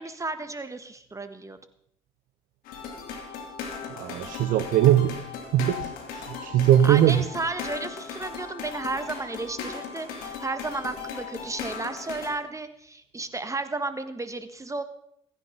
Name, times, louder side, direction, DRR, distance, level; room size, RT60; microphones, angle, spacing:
voice 1, 0.0-1.6 6.8-14.8, right 3 dB, 20° right, 10 dB, 1.8 m, -33 dB
sound 1, 2.6-12.3, left 6 dB, 65° left, 2.9 m, -37 dB
voice 2, 3.9-5.1 5.4-7.2, right 11 dB, 60° right, 9 dB, 0.9 m, -21 dB
16.0 x 15.0 x 4.1 m, 0.69 s
hypercardioid pair, 50°, 16 cm